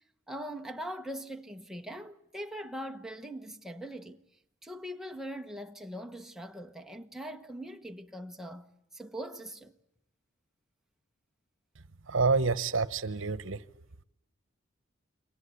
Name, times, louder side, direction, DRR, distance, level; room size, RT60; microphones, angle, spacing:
voice 1, 0.3-4.2 4.6-9.7, equal, ahead, 1.1 m, -41 dB
voice 2, 12.1-13.6, right 4 dB, 75° right, 1.0 m, -27 dB
30.0 x 23.0 x 8.3 m
head